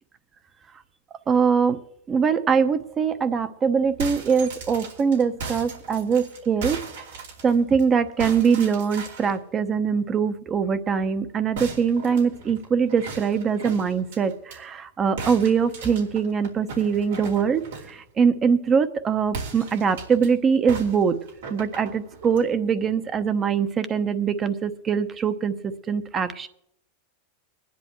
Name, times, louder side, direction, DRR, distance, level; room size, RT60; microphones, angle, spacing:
voice 1, 1.3-1.8 2.1-6.8 7.4-21.2 21.5-26.5, right 6 dB, 25° right, 11 dB, 1.0 m, -23 dB
sound 1, 3.8-7.8 8.2-9.4 11.5-14.6 15.2-18.0 19.3-20.3 20.7-22.5, right 4 dB, 85° right, 3.0 m, -37 dB
23.5 x 10.5 x 3.1 m, 0.75 s
hypercardioid pair, 115°, 0 cm